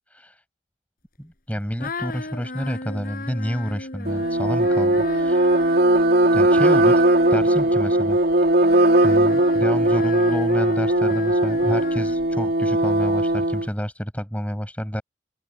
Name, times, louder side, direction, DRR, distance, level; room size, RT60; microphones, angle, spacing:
voice 1, 0.1-0.4 1.2-5.5 6.3-7.1 7.3-8.2 9.0-15.0, equal, 10° left, 7.5 m, -29 dB
sound 1, 1.8-8.0 8.6-12.5, left 2 dB, 55° left, 5.7 m, -36 dB
sound 2, 4.1-13.7, right 1 dB, 60° right, 2.9 m, -19 dB
open air
head